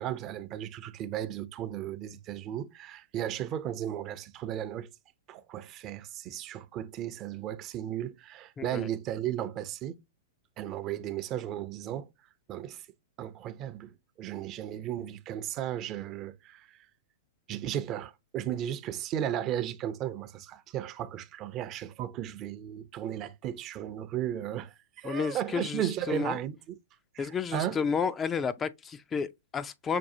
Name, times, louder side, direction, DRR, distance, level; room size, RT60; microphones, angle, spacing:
voice 1, 0.0-4.9 5.3-10.0 10.6-12.1 12.5-12.8 13.2-16.8 17.5-26.8 27.1-27.8, right 11 dB, 35° right, 0.5 m, -35 dB
voice 2, 8.6-8.9 25.0-26.4 27.2-30.0, left 6 dB, 20° left, 0.3 m, -31 dB
6.0 x 2.3 x 2.7 m
hypercardioid pair, 115°, 0 cm